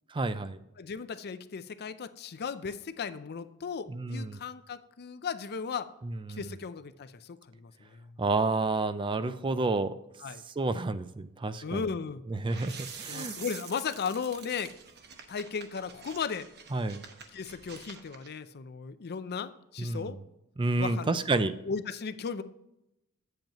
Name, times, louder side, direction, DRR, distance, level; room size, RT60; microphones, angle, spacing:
voice 1, 0.1-0.6 3.9-4.4 6.3-6.4 8.2-9.9 10.6-11.8 12.3-13.4 16.7-17.0 19.8-20.1 20.6-21.5, right 3 dB, 20° right, 12 dB, 0.4 m, -29 dB
voice 2, 0.8-5.9 6.3-8.1 9.2-9.6 10.2-10.4 11.6-12.2 13.1-14.7 15.3-16.5 17.3-20.2 20.8-21.2 21.6-22.4, left 6 dB, 45° left, 12 dB, 0.5 m, -36 dB
sound 1, 12.5-18.3, right 6 dB, 50° right, 1.0 m, -46 dB
8.8 x 7.8 x 3.0 m, 0.86 s
head